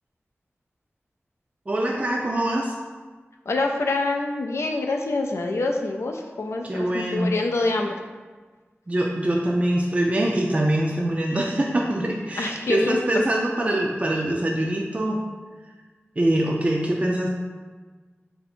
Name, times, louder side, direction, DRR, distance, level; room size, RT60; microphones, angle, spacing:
voice 1, 1.7-2.7 6.6-7.3 8.9-15.2 16.2-17.3, right 1 dB, 30° right, -2 dB, 0.4 m, -24 dB
voice 2, 3.5-7.9 12.4-13.2, left 2 dB, 85° left, 3 dB, 0.4 m, -26 dB
3.2 x 2.7 x 4.3 m, 1.4 s
wide cardioid pair, 65°, 4 cm